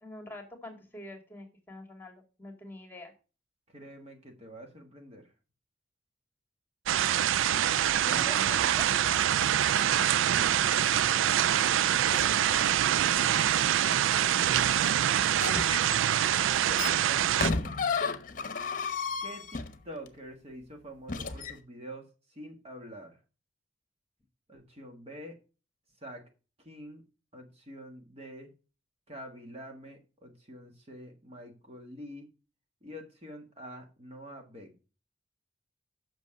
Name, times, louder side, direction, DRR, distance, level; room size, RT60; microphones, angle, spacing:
voice 1, 0.0-3.1 8.0-8.9, left 2 dB, 10° left, 5 dB, 2.0 m, -45 dB
voice 2, 3.7-5.3 8.0-8.6 9.7-11.7 15.8-17.7 19.2-23.2 24.5-25.4 26.0-26.2 26.6-27.0 27.3-28.5 29.1-32.3 32.8-34.8, equal, 30° right, 3 dB, 1.5 m, -47 dB
sound 1, 6.9-17.5, right 10 dB, 85° right, 0.4 m, -25 dB
sound 2, 12.0-12.6 15.3-20.1 21.1-21.5, left 4 dB, 45° left, 0.9 m, -33 dB
8.1 x 6.2 x 6.4 m, 0.34 s
head